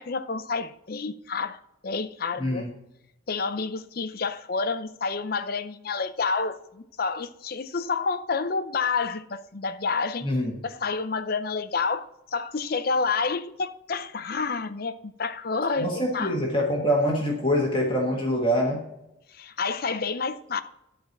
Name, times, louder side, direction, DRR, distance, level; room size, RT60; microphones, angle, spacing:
voice 1, 0.0-1.6 1.8-2.7 3.3-10.3 10.6-16.4 19.3-20.6, left 4 dB, 45° left, 0.6 m, -29 dB
voice 2, 15.8-18.8, equal, 25° left, 1.5 m, -24 dB
11.0 x 4.5 x 7.0 m
head